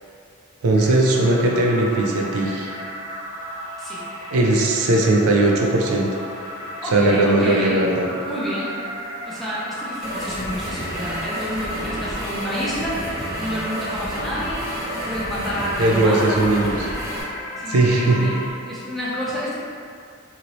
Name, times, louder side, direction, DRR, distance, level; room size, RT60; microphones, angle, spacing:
voice 1, 0.6-2.7 4.3-6.2 6.9-8.1 15.8-16.9 17.7-18.2, right 2 dB, 90° right, -1 dB, 0.4 m, -18 dB
sound 1, 0.7-18.5, equal, 70° left, 0.5 m, -34 dB
voice 2, 6.8-7.8 8.2-8.8 9.2-13.0 13.4-14.6 14.9-16.5 17.6-19.6, equal, ahead, -9 dB, 0.6 m, -29 dB
sound 2, 10.0-17.2, equal, 45° right, 1.2 m, -30 dB
2.8 x 2.6 x 3.0 m, 2.3 s
head